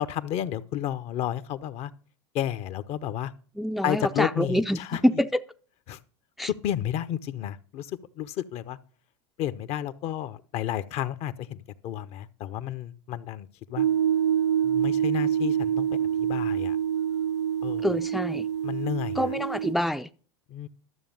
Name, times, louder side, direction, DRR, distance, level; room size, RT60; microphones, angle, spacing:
voice 1, 0.0-1.9 2.3-3.3 3.8-5.0 5.9-6.0 6.4-7.9 8.2-8.8 9.4-13.9 14.6-15.9 16.2-16.8 17.6-17.9 18.6-19.3 20.5-20.7, left 11 dB, 50° left, 0.8 m, -31 dB
voice 2, 3.6-5.4 6.4-6.5 17.8-18.5 19.2-20.1, equal, ahead, 0.5 m, -26 dB
sound 1, 13.8-19.7, right 9 dB, 85° right, 0.7 m, -26 dB
12.5 x 7.1 x 5.4 m
hypercardioid pair, 85°, 14 cm